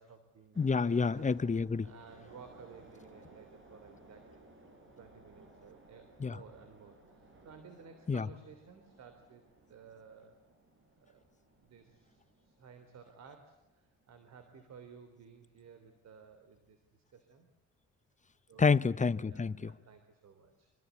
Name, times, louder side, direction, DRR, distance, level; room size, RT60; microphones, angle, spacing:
voice 1, 0.0-1.0 1.8-4.5 5.0-9.4 9.7-10.4 11.0-11.2 11.6-17.5 18.5-18.8 19.2-20.7, right 6 dB, 60° right, 3.7 m, -56 dB
sound 1, 0.5-15.1 15.4-15.6, right 2 dB, 40° right, 5.4 m, -59 dB
voice 2, 0.6-1.9 6.2-6.4 8.1-8.2 18.6-19.7, left 5 dB, 25° left, 1.0 m, -28 dB
26.0 x 25.5 x 8.4 m
cardioid pair, 90°, 30 cm